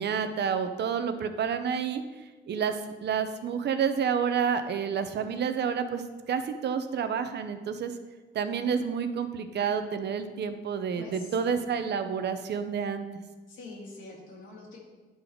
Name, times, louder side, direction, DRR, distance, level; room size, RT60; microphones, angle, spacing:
voice 1, 0.0-2.0 2.5-6.0 6.3-7.9 8.3-13.1, right 7 dB, 60° right, 9 dB, 0.7 m, -29 dB
voice 2, 11.0-11.7 13.5-14.8, left 2 dB, 85° left, -4 dB, 2.7 m, -45 dB
10.5 x 3.9 x 4.5 m, 1.3 s
cardioid pair, 90°, 20 cm